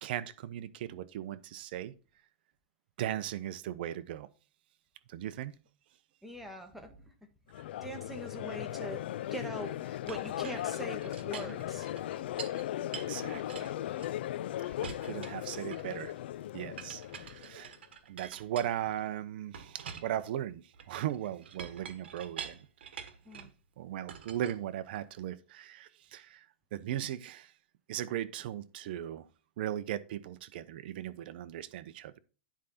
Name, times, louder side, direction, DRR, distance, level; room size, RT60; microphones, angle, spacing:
voice 1, 0.0-1.9 3.0-4.3 5.1-5.6 13.1-13.7 15.0-16.1 16.5-17.8 18.1-22.7 23.8-26.4 26.7-27.5 27.9-29.3 29.6-32.2, right 11 dB, 60° right, 0.9 m, -38 dB
voice 2, 6.2-7.1 7.8-9.0 9.3-11.9 23.2-23.5, right 1 dB, 5° right, 1.7 m, -43 dB
Crowd, 7.5-17.7, left 13 dB, 70° left, 0.4 m, -37 dB
Chink clink, 10.1-12.6 12.9-14.4 14.8-16.1 16.8-19.1 19.5-23.6 24.1-25.2, right 7 dB, 85° right, 1.5 m, -47 dB
10.5 x 5.1 x 4.2 m
hypercardioid pair, 140°, 6 cm